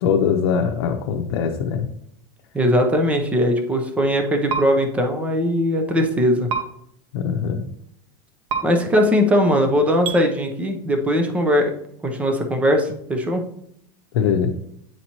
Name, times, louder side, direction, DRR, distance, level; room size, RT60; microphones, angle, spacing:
voice 1, 0.0-1.9 7.1-7.6 14.1-14.5, left 7 dB, 80° left, 2 dB, 0.7 m, -21 dB
voice 2, 2.5-6.5 8.6-11.7 12.0-13.4, equal, 10° right, 5 dB, 0.7 m, -20 dB
sound 1, 4.5-4.6 6.5-6.6 8.5-8.6 10.0-10.2, right 7 dB, 80° right, 1.0 m, -24 dB
8.7 x 4.1 x 3.0 m, 0.70 s
supercardioid pair, 155°, 13 cm